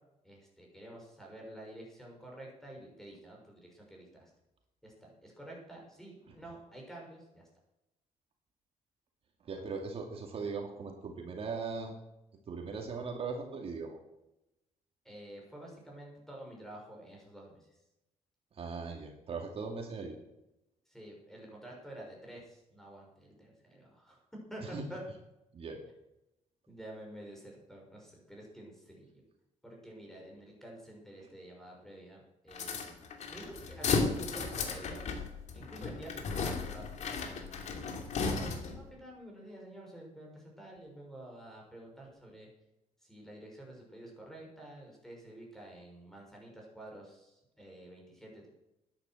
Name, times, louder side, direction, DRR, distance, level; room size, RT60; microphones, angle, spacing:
voice 1, 0.2-4.3 4.8-7.5 15.0-17.6 20.9-24.2 24.5-25.0 26.7-29.2 29.6-35.2 35.5-37.4 38.1-42.5 43.1-48.5, right 1 dB, 5° left, -1 dB, 6.2 m, -49 dB
voice 2, 9.4-12.0 12.5-14.0 18.5-20.2 24.6-24.8 25.5-25.8, right 4 dB, 50° right, 2 dB, 2.4 m, -39 dB
sound 1, 32.5-38.9, left 4 dB, 65° left, 2.7 m, -35 dB
12.5 x 10.5 x 7.8 m, 0.91 s
cardioid pair, 115°, 13 cm